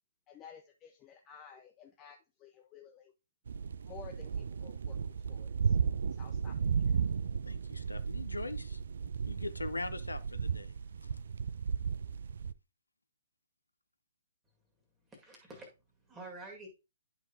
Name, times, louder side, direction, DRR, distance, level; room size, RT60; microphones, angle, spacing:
voice 1, 0.3-3.1 3.8-5.0 5.3-5.7 6.2-6.6 6.9-7.0, left 7 dB, 20° left, 0.5 m, -53 dB
sound 1, 3.5-12.5, right 6 dB, 55° right, 0.3 m, -34 dB
voice 2, 7.4-8.8 9.3-10.7 11.0-11.2, left 2 dB, 80° left, 0.5 m, -41 dB
voice 3, 15.0-16.7, right 2 dB, 10° right, 2.0 m, -49 dB
10.5 x 5.1 x 2.8 m
figure-of-eight pair, 125°, 0 cm